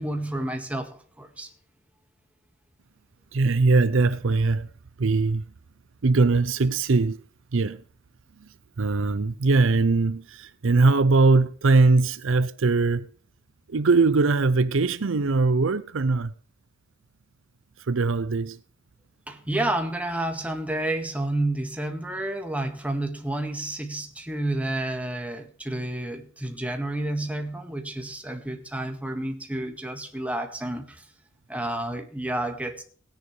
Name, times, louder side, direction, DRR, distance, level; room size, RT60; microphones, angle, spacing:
voice 1, 0.0-1.5 19.3-31.0 31.5-32.8, right 1 dB, 5° right, 1.8 m, -30 dB
voice 2, 3.3-4.7 5.0-5.4 6.0-7.2 7.5-7.8 8.8-13.1 13.7-16.3 17.9-18.6, right 3 dB, 65° right, 0.6 m, -21 dB
17.5 x 10.0 x 3.3 m
head